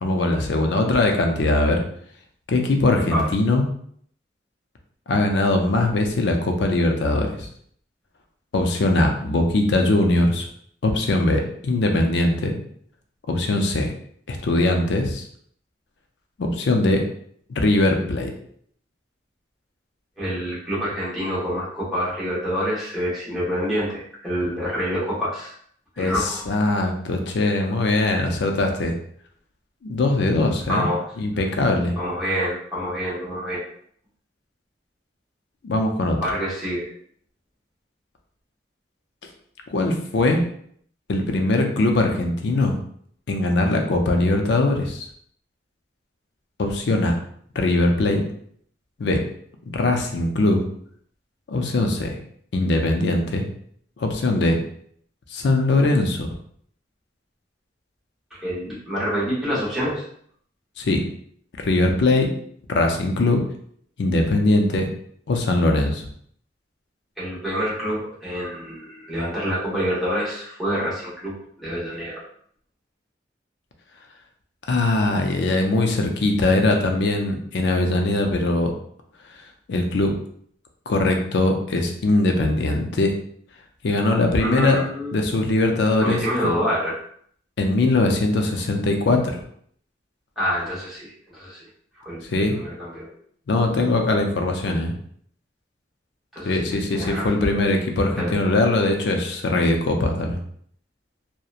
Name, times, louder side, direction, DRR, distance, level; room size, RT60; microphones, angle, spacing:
voice 1, 0.0-1.8 2.5-3.6 5.1-7.5 8.5-10.5 10.8-12.5 13.3-13.9 14.3-15.2 16.4-17.0 17.6-18.3 26.0-28.9 29.8-30.9 31.2-32.0 35.6-36.2 39.7-40.4 41.1-42.8 43.3-45.1 46.6-47.1 47.6-48.2 49.0-49.2 49.7-50.6 51.5-52.2 52.5-53.4 54.0-54.6 55.3-56.3 60.8-61.0 61.6-62.3 62.7-63.4 64.0-64.9 65.3-66.1 74.7-78.7 79.7-80.1 80.9-83.1 83.8-84.8 85.1-86.2 87.6-89.4 92.2-92.6 93.5-94.9 96.4-100.4, left 2 dB, 70° left, 3 dB, 0.4 m, -21 dB
voice 2, 20.2-25.5 26.0-26.4 30.7-31.1 32.0-33.7 36.2-36.9 58.3-60.1 67.2-72.2 84.4-85.1 86.0-87.0 90.4-91.7 92.0-93.1 96.3-97.4 98.2-98.3, equal, ahead, -9 dB, 0.9 m, -27 dB
2.8 x 2.1 x 2.4 m, 0.64 s
head